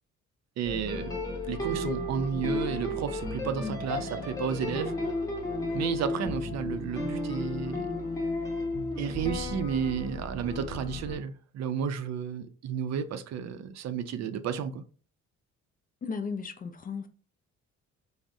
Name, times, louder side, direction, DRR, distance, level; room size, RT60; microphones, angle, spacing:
sound 1, 0.6-11.1, left 2 dB, 10° left, 0.8 m, -33 dB
voice 1, 0.6-1.1 1.4-4.9 5.7-8.0 9.0-14.8, right 7 dB, 60° right, 0.4 m, -32 dB
voice 2, 3.5-3.8 16.0-17.1, left 5 dB, 30° left, 0.3 m, -35 dB
3.4 x 2.0 x 2.5 m
cardioid pair, 90°, 30 cm